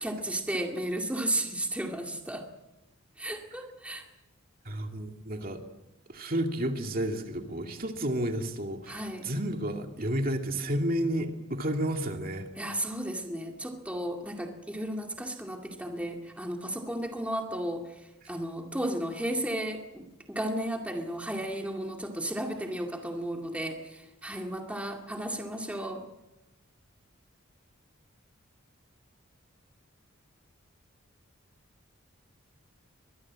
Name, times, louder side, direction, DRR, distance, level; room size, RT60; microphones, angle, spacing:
voice 1, 0.0-2.4 3.2-4.0 8.9-9.2 12.6-17.8 18.3-26.0, right 1 dB, 5° right, 2 dB, 2.2 m, -34 dB
voice 2, 4.6-5.6 6.1-12.5, right 1 dB, 45° right, 4 dB, 2.4 m, -31 dB
24.0 x 22.0 x 7.5 m, 1.0 s
head